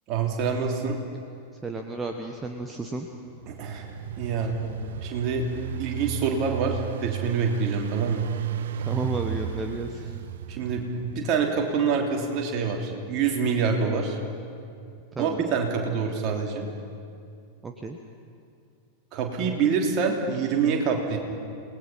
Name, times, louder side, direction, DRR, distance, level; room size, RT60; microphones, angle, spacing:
voice 1, 0.1-1.0 3.5-3.8 4.2-4.6 5.0-5.4 5.8-8.3 10.5-14.2 15.2-16.7 19.1-21.2, right 5 dB, 40° right, 1 dB, 3.2 m, -26 dB
voice 2, 1.5-3.1 8.8-10.1 15.1-15.4 17.6-18.0, right 2 dB, 15° right, 4 dB, 1.3 m, -32 dB
Engine, 3.3-11.3, right 10 dB, 60° right, 0.6 m, -34 dB
28.0 x 19.5 x 5.7 m, 2.4 s
figure-of-eight pair, 90°, 0 cm